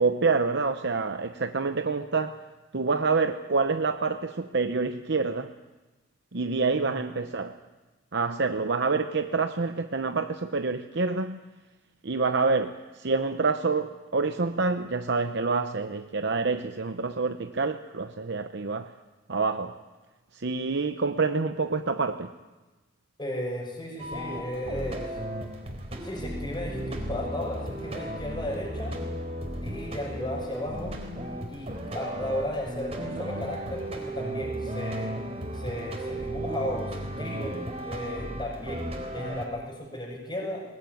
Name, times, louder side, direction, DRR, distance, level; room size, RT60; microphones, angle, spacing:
voice 1, 0.0-2.4 2.7-5.5 6.3-7.6 8.1-11.4 12.0-18.9 19.3-19.8 20.3-22.3, right 4 dB, 65° right, 0.9 m, -27 dB
voice 2, 23.2-25.1 26.0-28.9 29.6-30.9 31.5-35.2 35.5-40.6, left 1 dB, 25° left, 6.2 m, -35 dB
sound 1, 24.0-39.5, right 1 dB, 35° right, 4.0 m, -35 dB
21.5 x 20.5 x 9.4 m
head